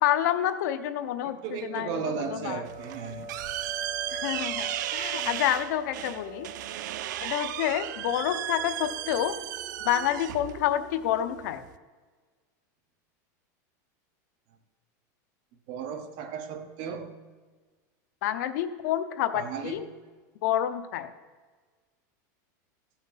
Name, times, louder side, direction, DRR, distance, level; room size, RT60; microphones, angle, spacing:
voice 1, 0.0-1.9 2.2-2.6 4.1-6.5 7.2-9.4 9.8-11.6 18.2-19.8 20.4-21.1, left 11 dB, 70° left, 11 dB, 0.8 m, -28 dB
voice 2, 1.4-3.2 15.7-17.1 19.3-19.8, right 6 dB, 45° right, 7 dB, 1.1 m, -35 dB
sound 1, 1.7-11.5, right 1 dB, 20° right, 1.4 m, -44 dB
sound 2, 2.7-11.8, right 13 dB, 90° right, 0.4 m, -35 dB
14.5 x 5.8 x 5.7 m, 1.4 s
supercardioid pair, 155°, 10 cm